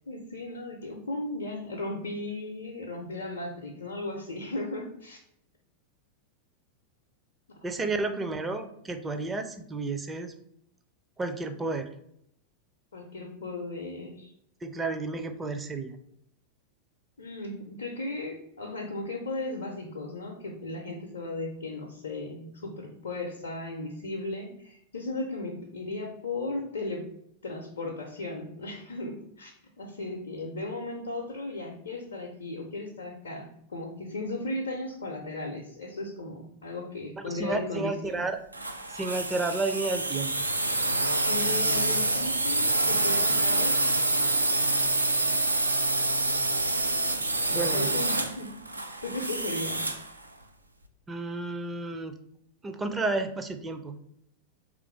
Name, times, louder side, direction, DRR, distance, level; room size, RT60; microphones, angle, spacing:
voice 1, 0.0-5.2 7.7-8.0 12.9-14.3 17.2-27.1 27.4-38.2 41.3-44.1 45.1-45.4 47.4-48.6 49.0-49.9, left 2 dB, 65° left, -1 dB, 0.6 m, -36 dB
voice 2, 7.6-10.3 11.2-11.9 14.6-16.0 37.2-38.4 38.9-40.3 47.5-47.9 51.1-52.1 52.6-54.0, right 3 dB, 15° right, 7 dB, 0.4 m, -31 dB
sound 1, 38.5-50.1, right 2 dB, 85° right, 0.4 m, -27 dB
3.5 x 2.5 x 4.4 m, 0.74 s
figure-of-eight pair, 90°, 0 cm